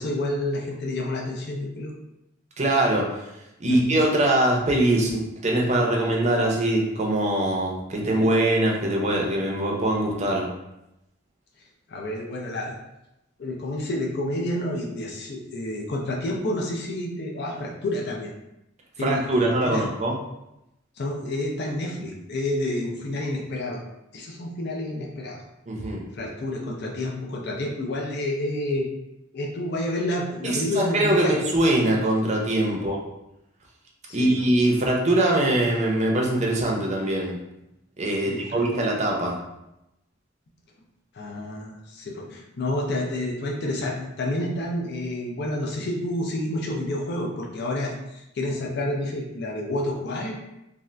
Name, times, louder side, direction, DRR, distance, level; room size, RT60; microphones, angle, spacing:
voice 1, 0.0-1.9 3.7-3.9 11.9-12.7 13.4-18.3 19.0-19.8 21.0-23.8 24.1-25.4 26.1-28.9 29.3-31.4 32.8-32.9 34.1-34.4 38.3-38.6 41.1-50.4, left 1 dB, 60° left, -1 dB, 0.5 m, -29 dB
voice 2, 2.6-3.1 3.6-10.5 19.0-20.2 25.7-26.0 30.4-33.0 34.1-37.4 38.0-39.4, right 1 dB, 35° right, -1 dB, 0.6 m, -22 dB
2.6 x 2.4 x 3.2 m, 0.88 s
head